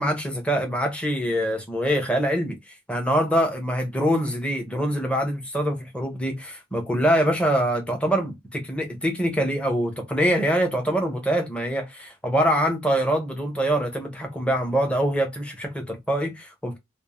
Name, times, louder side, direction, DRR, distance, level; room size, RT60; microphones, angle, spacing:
voice 1, 0.0-2.6 2.9-16.8, equal, 5° left, 0.7 m, -24 dB
2.5 x 2.0 x 2.9 m
head